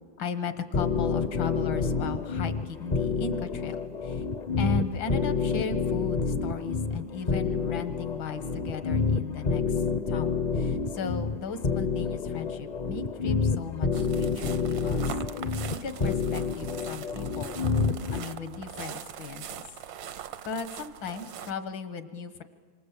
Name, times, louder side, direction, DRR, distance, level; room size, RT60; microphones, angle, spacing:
voice 1, 0.2-4.2 4.6-15.2 15.4-19.6 20.1-22.4, left 5 dB, 75° left, 11 dB, 2.1 m, -37 dB
sound 1, 0.7-18.2, left 5 dB, 40° left, 0.6 m, -28 dB
sound 2, 13.9-21.5, right 9 dB, 70° right, 1.7 m, -42 dB
28.0 x 25.5 x 8.3 m, 1.5 s
omnidirectional pair, 2.1 m